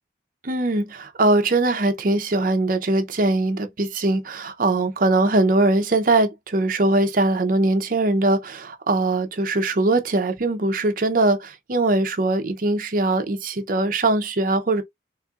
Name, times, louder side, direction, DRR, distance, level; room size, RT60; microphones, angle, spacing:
voice 1, 0.4-14.8, right 2 dB, 50° right, 0.6 m, -21 dB
4.2 x 2.5 x 2.3 m
head